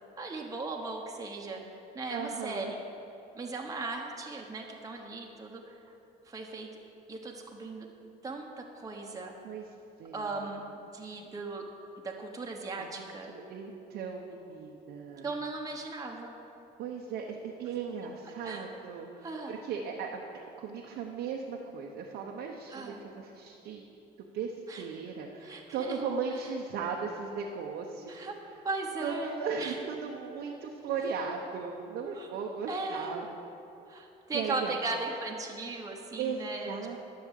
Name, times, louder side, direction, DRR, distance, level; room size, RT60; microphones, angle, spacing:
voice 1, 0.2-1.6 1.9-2.8 3.3-5.9 6.2-6.7 7.1-7.9 8.2-9.4 10.1-11.6 12.0-13.3 15.2-16.3 18.4-18.6 19.2-19.6 22.7-23.0 24.7-24.9 25.4-26.0 28.1-28.4 28.6-29.8 32.1-32.3 32.7-33.3 33.9-37.0, right 3 dB, 20° right, 0 dB, 1.2 m, -37 dB
voice 2, 2.1-2.7 9.4-9.7 10.0-10.4 12.8-15.3 16.8-20.2 20.6-23.8 24.3-28.1 29.0-33.3 34.3-34.7 36.2-37.0, right 5 dB, 80° right, 0 dB, 1.0 m, -37 dB
11.5 x 6.8 x 7.6 m, 2.8 s
cardioid pair, 110°, 17 cm